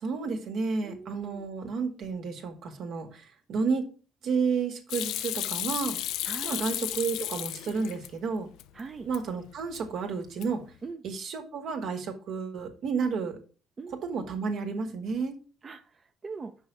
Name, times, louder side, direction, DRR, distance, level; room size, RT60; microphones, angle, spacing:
voice 1, 0.0-3.9 4.2-6.0 6.4-8.5 9.1-10.6 11.0-13.4 14.0-15.4, right 5 dB, 70° right, 4 dB, 1.9 m, -31 dB
voice 2, 0.8-1.5 6.2-6.6 8.7-9.1 10.8-11.0 13.8-14.0 15.6-16.5, right 4 dB, 40° right, 5 dB, 0.8 m, -41 dB
Hands / Sink (filling or washing), 4.9-8.1 8.5-9.2 9.5-10.0 10.3-10.7, left 13 dB, 80° left, 0.5 m, -34 dB
6.1 x 4.8 x 6.7 m, 0.37 s
supercardioid pair, 75°, 0 cm